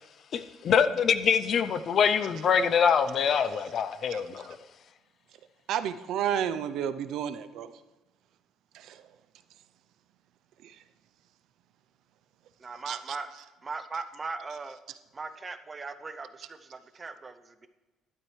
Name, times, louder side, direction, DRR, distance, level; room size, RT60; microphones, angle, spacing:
voice 1, 0.3-4.6, left 7 dB, 40° left, 13 dB, 0.5 m, -25 dB
voice 2, 5.7-7.7 8.7-9.0 10.6-10.8 12.9-13.2, right 9 dB, 65° right, 12 dB, 0.5 m, -32 dB
voice 3, 12.6-13.3 13.6-14.8 15.1-17.7, right 4 dB, 20° right, 10 dB, 0.6 m, -39 dB
12.0 x 12.0 x 3.2 m, 1.2 s
cardioid pair, 150°, 0 cm